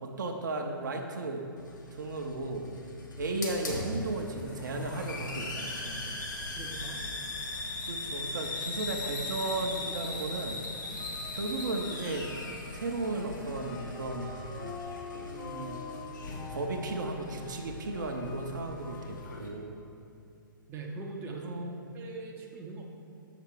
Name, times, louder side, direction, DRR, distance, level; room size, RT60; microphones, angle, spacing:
voice 1, 0.0-1.4 1.9-2.7 3.2-6.2 7.9-10.6 11.3-12.3 12.7-14.3 15.2-15.8 16.5-19.8 21.3-21.8, right 2 dB, 60° right, 2 dB, 0.8 m, -35 dB
Hiss, 1.6-19.5, left 2 dB, 60° left, 1.3 m, -39 dB
voice 2, 6.5-7.0 20.7-21.5 21.9-22.8, right 3 dB, 20° right, -1 dB, 0.7 m, -41 dB
sound 1, 9.4-19.3, left 3 dB, 25° left, 0.8 m, -46 dB
6.6 x 6.0 x 4.6 m, 2.6 s
figure-of-eight pair, 120°, 12 cm